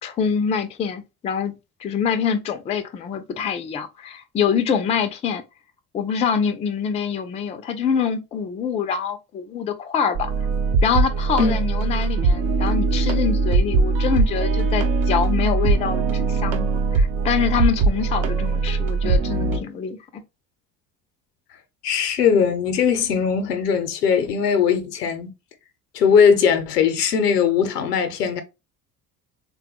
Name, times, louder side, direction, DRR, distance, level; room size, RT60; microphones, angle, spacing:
voice 1, 0.0-1.5 1.8-5.4 5.9-10.3 10.8-20.2, left 7 dB, 15° left, 0.3 m, -25 dB
sound 1, 10.2-19.6, right 4 dB, 60° right, 0.8 m, -21 dB
voice 2, 21.8-25.3 25.9-28.4, left 6 dB, 85° left, 0.6 m, -19 dB
3.5 x 2.2 x 2.8 m
figure-of-eight pair, 60°, 46 cm